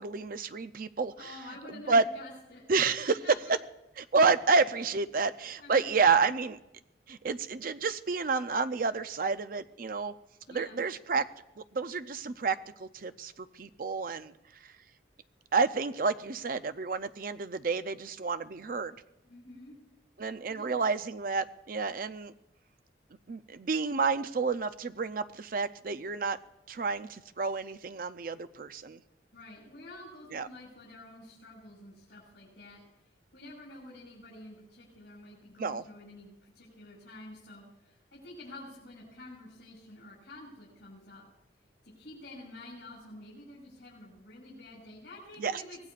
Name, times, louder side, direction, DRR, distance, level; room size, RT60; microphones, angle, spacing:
voice 1, 0.0-1.3 1.9-2.0 2.7-3.2 4.0-6.6 7.1-10.1 10.5-11.2 11.6-14.3 15.5-19.0 20.2-22.3 23.3-26.4 26.7-29.0 30.3-30.5 35.6-35.8 45.4-45.6, right 4 dB, 50° right, 12 dB, 0.5 m, -30 dB
voice 2, 1.2-2.7 3.0-3.6 4.7-4.9 5.6-5.9 10.5-10.8 19.3-19.8 20.4-20.8 29.3-32.8 33.3-41.2 41.8-45.8, left 2 dB, 65° left, -6 dB, 5.9 m, -49 dB
24.0 x 18.5 x 2.5 m, 0.90 s
head